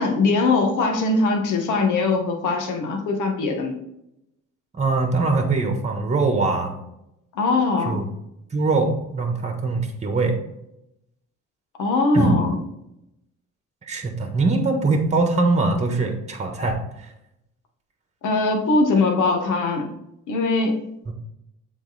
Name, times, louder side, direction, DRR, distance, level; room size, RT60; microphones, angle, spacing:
voice 1, 0.0-3.8 7.3-8.0 11.8-12.6 18.2-19.9 20.3-20.8, left 3 dB, 85° left, 3 dB, 1.3 m, -21 dB
voice 2, 4.7-6.8 7.8-8.1 8.5-10.4 12.1-12.4 13.9-17.1 21.1-21.2, right 3 dB, 20° right, 4 dB, 1.3 m, -22 dB
7.2 x 3.9 x 4.1 m, 0.83 s
cardioid pair, 90°, 30 cm